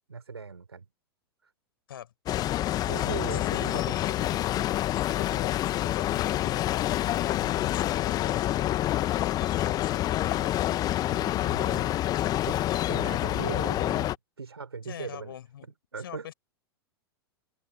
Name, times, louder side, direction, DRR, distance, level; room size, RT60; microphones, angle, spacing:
voice 1, 0.1-0.8 1.4-1.5 2.8-4.0 11.1-12.0 12.4-12.6 12.9-15.4 15.9-16.3, right 5 dB, 75° right, 6.5 m, -39 dB
sound 1, 2.3-14.2, left 14 dB, 30° left, 1.5 m, -27 dB
voice 2, 3.3-4.6 5.0-10.5 14.8-15.7 16.0-16.3, left 10 dB, 60° left, 5.7 m, -43 dB
figure-of-eight pair, 95°, 13 cm